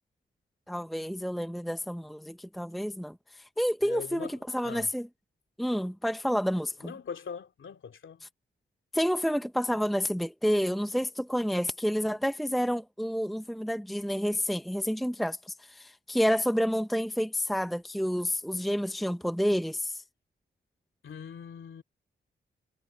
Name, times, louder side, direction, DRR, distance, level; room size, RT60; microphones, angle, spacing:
voice 1, 0.7-5.1 5.6-6.9 8.9-20.0, equal, ahead, 1.0 m, -29 dB
voice 2, 3.8-4.9 6.8-8.3 21.0-21.8, left 6 dB, 70° left, 2.8 m, -42 dB
supercardioid pair, 50°, 21 cm